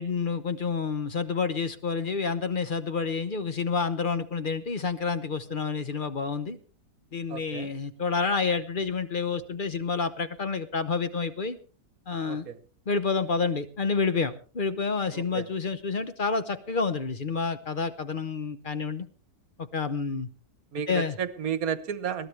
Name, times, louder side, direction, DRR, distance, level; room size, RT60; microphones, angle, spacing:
voice 1, 0.0-6.6 7.1-11.6 12.1-12.5 12.9-19.1 19.6-20.3 20.9-21.2, left 5 dB, 40° left, 12 dB, 0.8 m, -29 dB
voice 2, 7.3-7.7 12.3-12.6 15.1-15.5 20.7-22.3, right 8 dB, 55° right, 14 dB, 1.4 m, -32 dB
21.5 x 14.5 x 3.3 m, 0.36 s
omnidirectional pair, 1.9 m